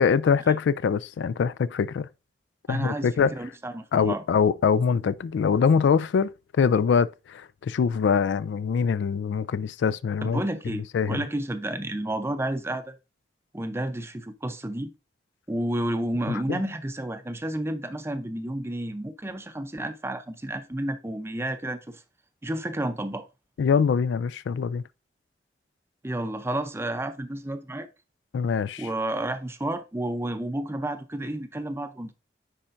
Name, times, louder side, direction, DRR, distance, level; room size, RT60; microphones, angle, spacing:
voice 1, 0.0-2.1 2.7-3.3 3.9-10.4 10.9-11.2 16.3-16.6 23.6-24.8 28.3-28.9, left 6 dB, 75° left, 0.3 m, -23 dB
voice 2, 2.7-4.2 10.2-13.0 13.5-14.9 15.5-22.0 22.4-23.3 26.0-27.9 28.8-32.1, right 1 dB, 15° right, 0.5 m, -31 dB
10.0 x 4.3 x 2.5 m
head